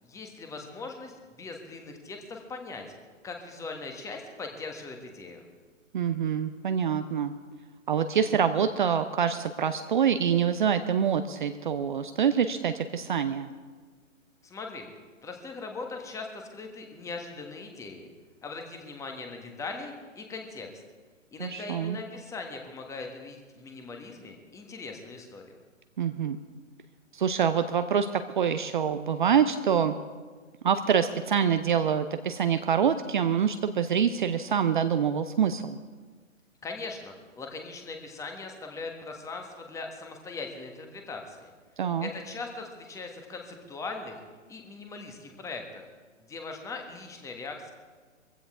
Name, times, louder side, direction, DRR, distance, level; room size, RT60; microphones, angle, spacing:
voice 1, 0.0-2.8 3.2-5.4 14.4-14.9 15.2-18.1 18.4-20.7 21.3-25.4 36.6-41.5 42.0-44.2 44.5-45.9 46.3-47.7, left 3 dB, 10° left, 3 dB, 1.4 m, -40 dB
voice 2, 5.9-7.3 7.9-13.5 21.4-22.0 26.0-26.4 27.1-29.9 30.6-35.8 41.8-42.1, right 7 dB, 40° right, 9 dB, 0.7 m, -26 dB
23.0 x 15.5 x 3.7 m, 1.4 s
figure-of-eight pair, 125°, 39 cm